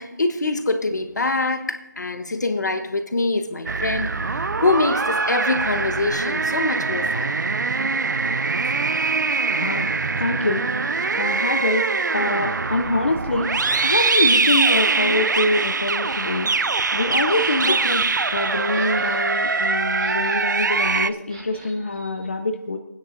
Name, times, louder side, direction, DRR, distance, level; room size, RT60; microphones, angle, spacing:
voice 1, 0.0-4.2 4.6-7.3, left 3 dB, 70° left, 1.1 m, -24 dB
sound 1, 3.7-21.1, right 4 dB, 80° right, 0.5 m, -23 dB
voice 2, 9.6-9.9 10.2-10.7 11.1-13.5 13.8-16.5 16.9-22.8, left 2 dB, 40° left, 0.5 m, -25 dB
sound 2, 17.4-22.2, right 1 dB, 20° right, 1.8 m, -46 dB
23.5 x 9.6 x 2.5 m
figure-of-eight pair, 180°, 10 cm